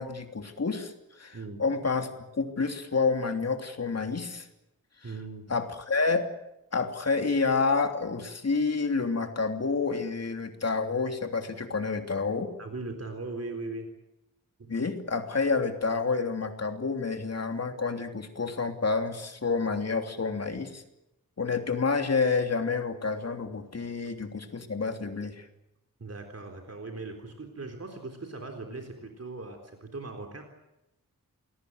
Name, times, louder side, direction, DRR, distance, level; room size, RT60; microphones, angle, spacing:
voice 1, 0.0-4.5 5.5-6.3 6.7-12.5 14.7-20.8 21.4-25.4, left 4 dB, 45° left, 5 dB, 3.1 m, -29 dB
voice 2, 5.0-5.5 12.6-13.9 14.6-14.7 26.0-30.5, right 3 dB, 45° right, 3 dB, 3.8 m, -39 dB
28.5 x 20.5 x 8.0 m, 0.90 s
wide cardioid pair, 135°, 35 cm